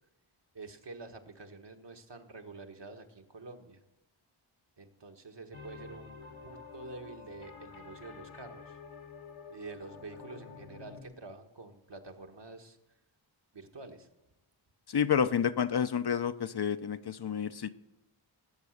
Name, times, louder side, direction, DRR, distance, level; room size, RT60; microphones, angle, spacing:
voice 1, 0.5-3.8 4.8-8.8 9.5-12.8 13.5-14.1, right 3 dB, 55° right, 4 dB, 1.6 m, -48 dB
sound 1, 5.5-11.0, left 5 dB, 75° left, 1.5 m, -49 dB
voice 2, 14.9-17.7, left 7 dB, 50° left, 12 dB, 0.7 m, -29 dB
19.0 x 7.4 x 6.6 m, 0.97 s
cardioid pair, 50°, 49 cm